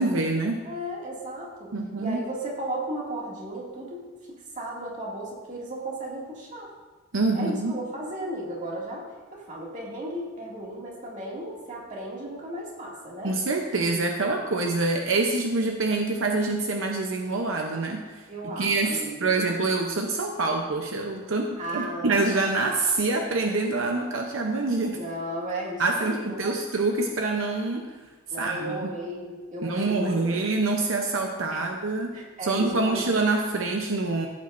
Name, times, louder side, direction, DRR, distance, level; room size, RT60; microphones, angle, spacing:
voice 1, 0.0-0.6 1.7-2.2 7.1-7.7 13.2-18.2 18.6-25.0 25.8-27.9 28.4-28.9 29.6-32.1 32.4-34.3, right 3 dB, 75° right, 2 dB, 0.8 m, -26 dB
voice 2, 0.6-6.7 7.3-13.4 18.3-19.3 21.6-22.2 25.0-26.6 28.3-30.4 31.5-31.7 32.1-33.1, right 1 dB, 40° right, -4 dB, 2.3 m, -35 dB
15.0 x 8.5 x 2.6 m, 1.3 s
head